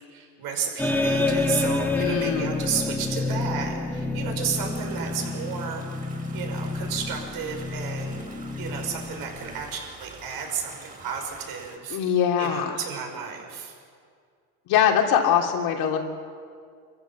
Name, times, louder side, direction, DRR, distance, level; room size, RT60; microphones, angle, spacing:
voice 1, 0.1-5.9 6.3-8.3 8.6-12.0 12.4-13.7, right 7 dB, 65° right, 2 dB, 5.5 m, -32 dB
sound 1, 0.8-9.7, left 3 dB, 5° left, 2.3 m, -28 dB
voice 2, 1.9-2.5 11.9-12.8 14.7-16.0, left 8 dB, 75° left, 2 dB, 3.3 m, -22 dB
sound 2, 4.5-11.8, right 3 dB, 20° right, 4.5 m, -47 dB
25.5 x 15.0 x 7.4 m, 2.2 s
supercardioid pair, 95°, 38 cm